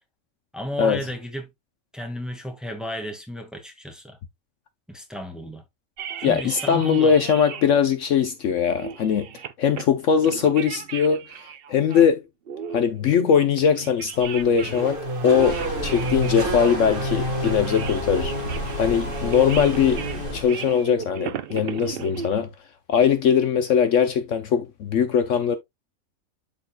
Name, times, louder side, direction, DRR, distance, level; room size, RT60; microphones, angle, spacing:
voice 1, 0.5-1.5 1.9-4.2 4.9-5.6 6.2-7.2, equal, ahead, 1.6 m, -33 dB
sound 1, 6.0-7.8 8.2-8.3 8.7-9.9 10.1-12.1 12.5-14.9 15.3-22.4, right 8 dB, 55° right, 0.7 m, -37 dB
voice 2, 6.2-9.3 9.6-12.2 12.7-18.3 18.8-20.0 20.3-22.5 22.9-25.6, left 7 dB, 65° left, 1.0 m, -21 dB
Race car auto racing / Accelerating revving vroom, 14.1-20.8, equal, 40° right, 1.8 m, -30 dB
sound 2, 15.4-20.4, left 1 dB, 85° left, 3.1 m, -33 dB
12.5 x 4.1 x 2.2 m
omnidirectional pair, 1.5 m